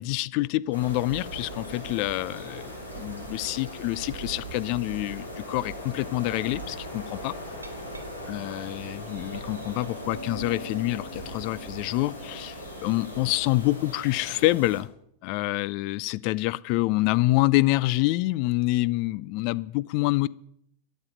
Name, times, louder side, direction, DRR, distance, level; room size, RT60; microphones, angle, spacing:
voice 1, 0.0-7.3 8.3-14.9 15.2-20.3, left 19 dB, 45° left, 0.4 m, -27 dB
sound 1, 0.7-14.8, equal, 85° left, 3.6 m, -39 dB
Glass, 7.4-13.5, right 1 dB, 80° right, 1.7 m, -45 dB
12.5 x 7.4 x 9.0 m
figure-of-eight pair, 90°, 0 cm